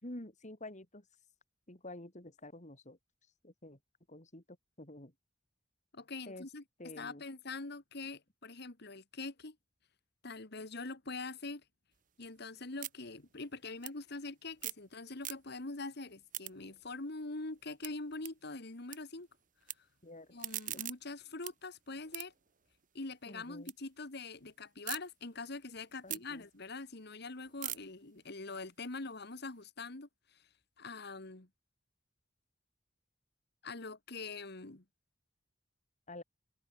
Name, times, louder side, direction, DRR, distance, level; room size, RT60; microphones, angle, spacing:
voice 1, 0.0-1.0 1.7-3.0 3.4-3.8 4.1-4.4 4.8-5.1 6.3-6.5 6.8-7.2 20.0-20.3 20.7-20.8 23.3-23.7 26.0-26.4 36.1-36.2, left 1 dB, 40° left, 4.6 m, -48 dB
voice 2, 5.9-9.6 10.2-11.6 12.2-19.3 20.3-22.3 22.9-30.4 30.8-31.5 33.6-34.8, left 3 dB, 60° left, 1.9 m, -44 dB
sound 1, 11.9-14.9 15.2-15.8 16.1-19.0 19.3-19.7 20.2-23.8 24.1-25.0 25.5-29.6, right 13 dB, 45° right, 1.6 m, -46 dB
head